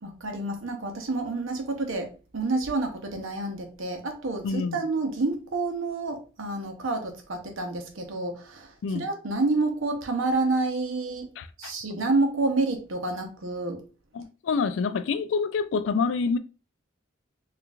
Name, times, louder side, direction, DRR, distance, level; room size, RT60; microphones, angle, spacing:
voice 1, 0.0-11.3 11.6-13.8, right 3 dB, 80° right, 0.8 m, -29 dB
voice 2, 4.4-4.8 8.8-9.1 11.4-11.7 14.1-16.4, left 5 dB, 70° left, 0.3 m, -27 dB
4.4 x 2.4 x 2.4 m
head